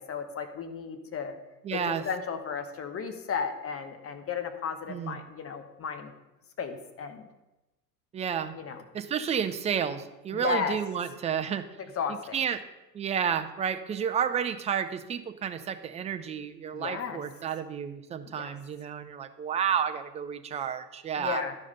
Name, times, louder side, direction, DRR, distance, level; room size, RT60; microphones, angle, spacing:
voice 1, 0.0-1.3 1.7-6.1 6.6-7.3 8.5-8.8 10.3-10.8 11.8-12.4 16.7-17.2 18.3-18.6 21.2-21.5, left 6 dB, 30° left, 8 dB, 1.1 m, -34 dB
voice 2, 1.6-2.0 4.9-5.2 8.1-8.5 8.9-11.6 12.3-12.6 12.9-21.4, right 8 dB, 15° right, 9 dB, 0.4 m, -31 dB
12.0 x 4.9 x 5.3 m, 1.0 s
hypercardioid pair, 80°, 49 cm